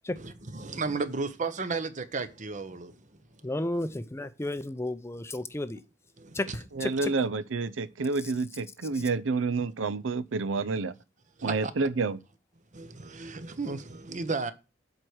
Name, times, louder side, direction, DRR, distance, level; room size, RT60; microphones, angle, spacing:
voice 1, 0.2-3.0 6.2-6.6 11.4-11.7 12.7-14.5, right 4 dB, 40° right, 0.9 m, -34 dB
voice 2, 3.4-5.8 6.3-7.1, left 1 dB, 15° left, 0.5 m, -33 dB
voice 3, 6.7-10.9 11.4-12.2, right 4 dB, 85° right, 0.6 m, -29 dB
7.7 x 4.6 x 6.3 m
head